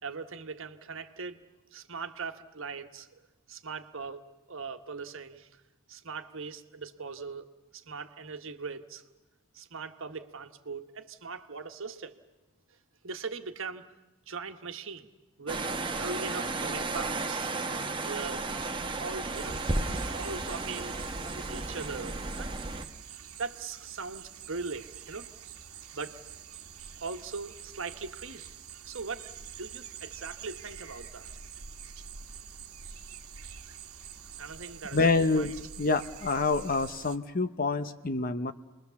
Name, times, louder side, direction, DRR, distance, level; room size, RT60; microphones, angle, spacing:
voice 1, 0.0-1.4 1.7-3.2 3.5-4.2 4.5-5.5 5.9-7.5 7.7-9.0 9.5-12.1 13.0-13.8 14.3-15.1 15.4-18.4 19.0-19.6 20.1-22.6 23.1-25.3 25.9-26.2 27.0-28.4 28.8-29.3 29.6-31.3 34.4-35.5, right 4 dB, 65° right, 7 dB, 1.4 m, -40 dB
sound 1, 15.5-22.8, right 3 dB, 20° right, 1.1 m, -33 dB
sound 2, 19.3-37.2, right 7 dB, 85° right, 1.4 m, -46 dB
voice 2, 34.9-38.5, left 3 dB, 40° left, 10 dB, 0.8 m, -27 dB
29.5 x 22.0 x 7.1 m, 1.1 s
head